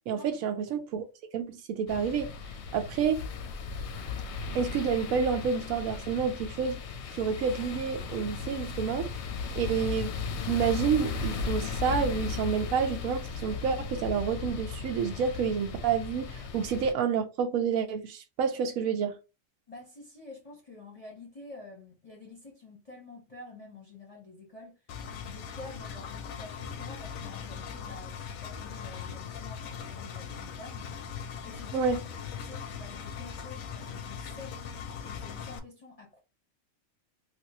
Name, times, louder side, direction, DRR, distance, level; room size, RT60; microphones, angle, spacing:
voice 1, 0.1-1.0 1.3-2.3 2.7-3.2 4.5-6.8 7.1-9.1 9.6-10.1 10.5-19.1 31.7-32.0, right 6 dB, 90° right, 1.0 m, -29 dB
sound 1, 1.9-16.9, left 5 dB, 65° left, 0.8 m, -36 dB
voice 2, 19.7-24.8 25.2-30.9 31.4-31.8 32.3-34.6 35.0-36.2, left 3 dB, 35° left, 0.7 m, -48 dB
Engine, 24.9-35.6, left 7 dB, 90° left, 1.0 m, -40 dB
3.3 x 2.5 x 2.8 m
omnidirectional pair, 1.4 m